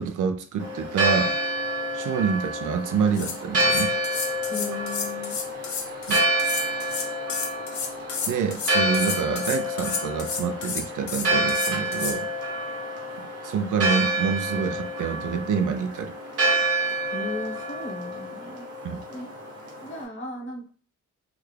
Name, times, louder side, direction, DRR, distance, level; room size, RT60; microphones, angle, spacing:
voice 1, 0.0-1.4 1.9-3.9 6.1-6.2 8.3-12.3 13.4-16.1 18.8-19.0, right 6 dB, 85° right, 6 dB, 0.5 m, -27 dB
Church bell, 0.6-20.0, right 1 dB, 50° right, 1.1 m, -28 dB
sound 1, 2.9-3.0 3.1-12.2, left 5 dB, 70° left, 0.7 m, -31 dB
voice 2, 4.5-5.4 17.1-18.6 19.1-19.3 19.8-20.7, left 2 dB, 40° left, -1 dB, 1.0 m, -36 dB
3.4 x 2.3 x 3.2 m, 0.40 s
wide cardioid pair, 155°, 30 cm